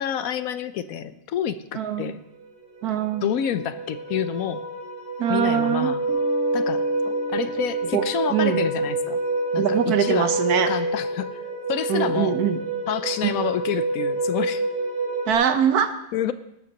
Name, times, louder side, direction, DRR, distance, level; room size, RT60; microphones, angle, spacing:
voice 1, 0.0-2.2 3.2-4.6 5.3-6.0 6.5-6.8 7.3-9.2 9.5-10.4 10.7-11.4 11.7-12.4 12.9-14.6 16.1-16.3, left 9 dB, 70° left, 13 dB, 1.0 m, -28 dB
voice 2, 1.8-2.1 2.8-3.3 5.2-5.9 7.9-8.1 8.3-8.6 9.6-10.7 11.9-12.6 13.2-13.3 15.3-15.9, right 8 dB, 80° right, 9 dB, 1.4 m, -22 dB
sound 1, 2.4-2.5 2.8-15.3, right 2 dB, 15° right, 1.8 m, -27 dB
sound 2, 6.1-9.4, left 4 dB, 85° left, 4.2 m, -39 dB
18.5 x 12.5 x 2.9 m, 0.82 s
omnidirectional pair, 1.6 m